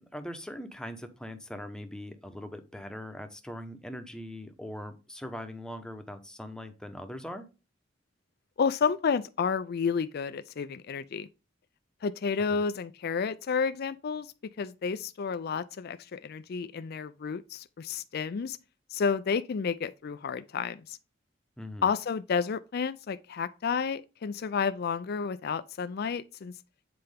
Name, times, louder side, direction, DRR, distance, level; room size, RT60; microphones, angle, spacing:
voice 1, 0.0-7.5 12.5-12.6 21.6-21.9, left 1 dB, 5° left, 0.9 m, -41 dB
voice 2, 8.6-11.3 12.0-14.3 14.6-18.6 18.9-21.0 21.8-26.5, left 5 dB, 55° left, 0.4 m, -31 dB
7.7 x 4.4 x 3.4 m
head